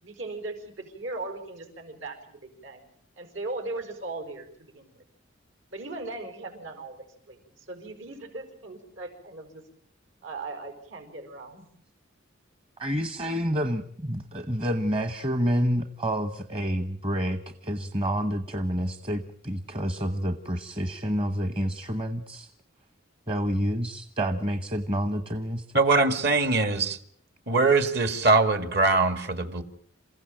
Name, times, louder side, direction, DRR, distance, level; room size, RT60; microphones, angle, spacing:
voice 1, 0.0-2.8 3.2-4.9 5.7-9.6 10.2-11.7, right 2 dB, 70° right, 6 dB, 5.0 m, -38 dB
voice 2, 12.8-22.5 23.3-25.6, equal, 25° right, 9 dB, 1.1 m, -28 dB
voice 3, 25.7-27.0 27.5-29.6, right 3 dB, 55° right, 10 dB, 2.1 m, -22 dB
28.5 x 16.0 x 9.0 m, 0.65 s
head